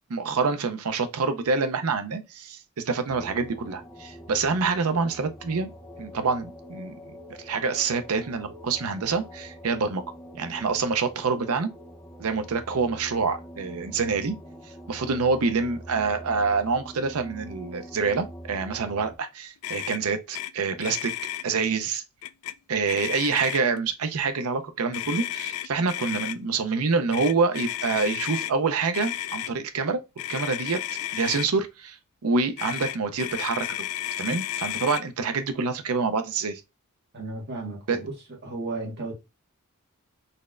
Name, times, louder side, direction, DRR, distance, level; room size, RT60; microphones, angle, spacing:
voice 1, 0.1-5.7 6.0-6.9 7.4-10.0 10.3-11.7 12.2-14.4 14.9-21.1 21.4-22.0 22.7-30.0 30.3-30.8 31.1-32.0 32.2-33.8 34.2-36.6 37.9-38.0, right 4 dB, 70° right, 0.6 m, -26 dB
sound 1, 3.1-19.2, equal, 10° left, 0.6 m, -44 dB
Motor vehicle (road), 19.6-20.0 20.3-20.5 20.8-21.4 22.2-22.5 22.9-23.8 24.9-26.4 27.1-28.5 28.9-29.5 30.2-31.5 32.6-35.0, left 13 dB, 80° left, 0.3 m, -32 dB
voice 2, 37.1-38.2 38.4-39.1, right 3 dB, 50° right, 1.8 m, -34 dB
4.1 x 3.2 x 2.4 m
head